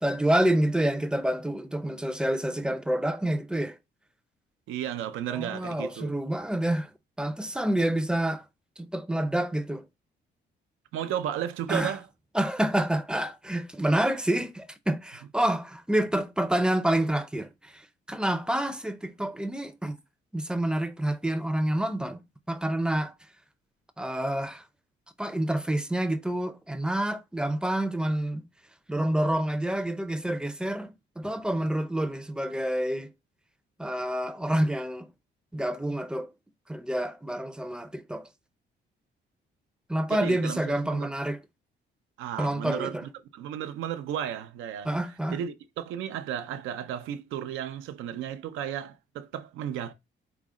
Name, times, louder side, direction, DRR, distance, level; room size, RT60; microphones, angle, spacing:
voice 1, 0.0-3.8 5.3-6.9 7.2-8.4 8.9-9.8 11.7-12.0 12.3-17.8 18.1-20.0 20.3-22.2 22.5-23.1 24.0-24.6 25.2-28.4 28.9-33.1 33.8-35.1 35.5-36.3 36.7-38.3 39.9-41.4 42.4-43.0 44.9-45.4, right 1 dB, 5° right, 0.5 m, -28 dB
voice 2, 4.7-6.2 10.9-12.1 40.1-41.1 42.2-44.9 45.3-49.9, right 10 dB, 90° right, 0.5 m, -34 dB
4.9 x 2.1 x 3.6 m
cardioid pair, 90°, 20 cm